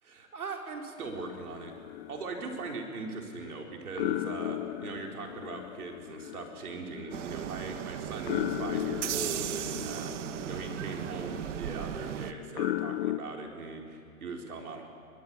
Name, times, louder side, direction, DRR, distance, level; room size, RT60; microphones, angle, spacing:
voice 1, 0.0-1.7 2.1-14.9, right 4 dB, 85° right, 1 dB, 4.4 m, -40 dB
sound 1, 1.0-3.6 4.0-13.2, left 14 dB, 40° left, 0.8 m, -37 dB
sound 2, 7.1-12.3, right 10 dB, 55° right, 1.2 m, -36 dB
23.0 x 22.0 x 7.1 m, 2.3 s
hypercardioid pair, 135°, 43 cm